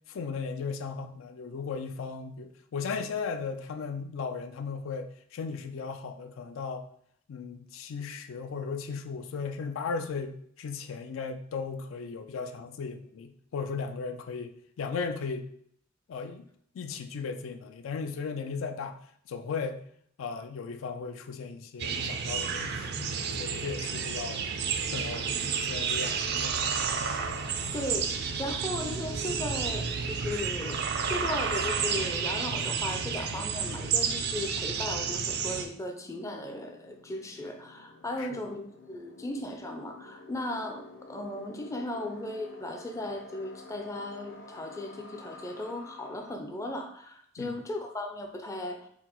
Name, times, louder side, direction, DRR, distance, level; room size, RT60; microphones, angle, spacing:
voice 1, 0.1-6.9 7.3-15.5 16.1-16.5 16.7-19.0 19.3-19.8 20.2-23.1 23.4-24.5 24.9-26.6 38.2-38.4 47.4-47.6, left 5 dB, 80° left, 8 dB, 0.4 m, -36 dB
sound 1, 21.8-35.6, right 6 dB, 55° right, 0.4 m, -31 dB
voice 2, 27.4-28.1 28.4-30.8 31.1-48.9, left 1 dB, 15° left, 4 dB, 0.4 m, -37 dB
sound 2, 33.2-46.4, left 2 dB, 65° left, 0.7 m, -51 dB
4.5 x 2.0 x 3.8 m, 0.65 s
head